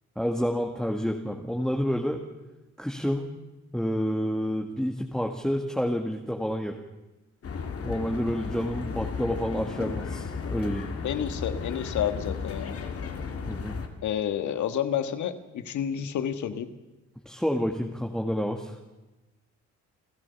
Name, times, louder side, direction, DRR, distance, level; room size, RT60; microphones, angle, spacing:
voice 1, 0.2-2.2 2.8-3.3 3.7-6.8 7.8-10.9 13.4-13.8 17.3-18.8, equal, ahead, 2 dB, 1.8 m, -29 dB
sound 1, 7.4-13.9, left 5 dB, 50° left, 2.5 m, -34 dB
voice 2, 11.0-12.8 14.0-16.7, left 9 dB, 70° left, 10 dB, 1.6 m, -30 dB
29.5 x 12.5 x 7.0 m, 1.1 s
cardioid pair, 90°, 30 cm